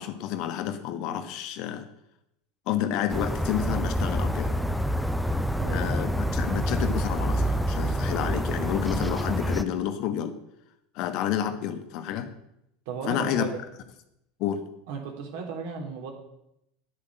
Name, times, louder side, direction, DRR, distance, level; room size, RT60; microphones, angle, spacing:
voice 1, 0.0-1.9 2.7-4.5 5.7-10.3 10.9-12.3 13.1-13.5 14.4-14.6, left 10 dB, 55° left, 9 dB, 1.4 m, -30 dB
sound 1, 3.1-9.6, equal, ahead, 0.8 m, -27 dB
voice 2, 5.6-5.9 12.9-13.6 14.9-16.1, right 5 dB, 60° right, 2 dB, 3.4 m, -35 dB
10.5 x 8.7 x 7.7 m, 0.81 s
hypercardioid pair, 80°, 0 cm